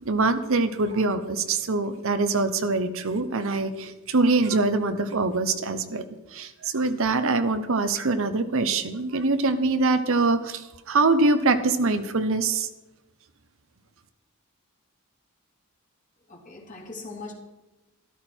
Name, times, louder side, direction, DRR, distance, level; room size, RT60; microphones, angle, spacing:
voice 1, 0.0-6.0 6.3-12.7, right 3 dB, 65° right, 10 dB, 0.9 m, -24 dB
voice 2, 16.3-17.3, left 3 dB, 35° left, 0 dB, 2.6 m, -40 dB
13.0 x 13.0 x 4.5 m, 1.0 s
head